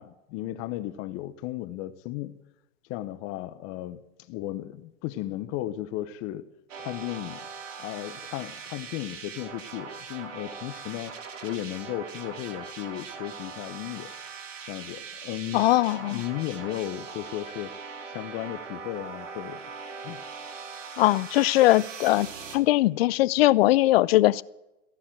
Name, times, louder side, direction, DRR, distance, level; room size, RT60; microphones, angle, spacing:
voice 1, 0.0-2.3 2.9-4.0 4.3-6.5 6.8-7.5 7.8-14.1 14.7-15.7 16.1-17.7 18.0-19.7 20.0-20.2, left 14 dB, 35° left, 0.9 m, -35 dB
sound 1, 6.7-22.6, right 5 dB, 75° right, 3.0 m, -41 dB
voice 2, 15.5-16.2 21.0-22.3 22.5-24.4, left 17 dB, 50° left, 0.6 m, -20 dB
15.5 x 11.5 x 7.6 m
hypercardioid pair, 115°, 38 cm